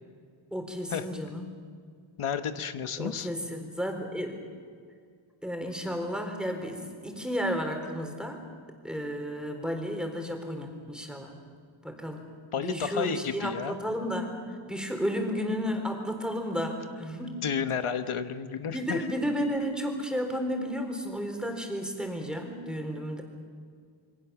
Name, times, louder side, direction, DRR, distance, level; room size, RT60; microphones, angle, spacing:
voice 1, 0.5-1.4 3.0-4.4 5.4-8.4 8.8-11.3 11.8-12.2 12.6-14.3 14.7-17.4 18.7-23.2, equal, ahead, 3 dB, 4.0 m, -32 dB
voice 2, 2.2-3.3 12.5-13.8 17.4-19.0, left 7 dB, 85° left, 9 dB, 1.3 m, -31 dB
27.5 x 24.0 x 7.1 m, 2.1 s
wide cardioid pair, 150°, 49 cm